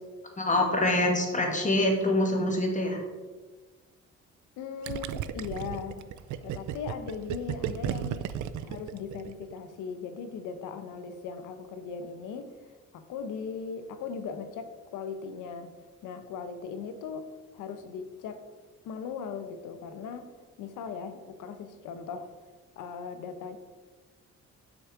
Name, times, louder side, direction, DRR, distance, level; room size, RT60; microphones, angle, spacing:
voice 1, 0.4-3.0, left 1 dB, 25° left, 2 dB, 1.8 m, -25 dB
voice 2, 4.6-6.0 6.4-8.3 8.6-12.5 12.9-15.7 16.0-18.4 18.8-20.3 20.6-22.3 22.8-23.6, left 6 dB, 90° left, 9 dB, 0.8 m, -38 dB
Gurgling, 4.8-9.5, right 10 dB, 75° right, 0.5 m, -34 dB
6.3 x 6.3 x 4.8 m, 1.4 s
cardioid pair, 90°, 30 cm